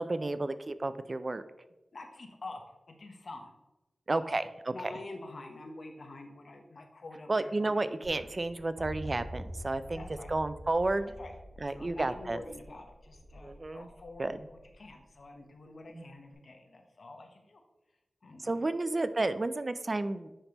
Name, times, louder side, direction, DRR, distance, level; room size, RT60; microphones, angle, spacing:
voice 1, 0.0-1.4 4.1-4.9 7.3-10.0 10.3-11.1 11.6-12.4 13.4-13.9 14.2-14.4 15.9-16.1 18.4-20.3, right 2 dB, 45° right, 12 dB, 0.3 m, -31 dB
voice 2, 1.9-2.6 2.9-3.5 4.1-4.4 4.7-8.0 9.9-10.3 11.2-11.3 11.8-17.6 18.2-18.7, left 2 dB, 70° left, 4 dB, 0.9 m, -47 dB
sound 1, 8.0-15.2 16.3-16.4, equal, 90° right, 1.6 m, -47 dB
9.9 x 3.4 x 2.9 m, 1.0 s
cardioid pair, 55°, 0 cm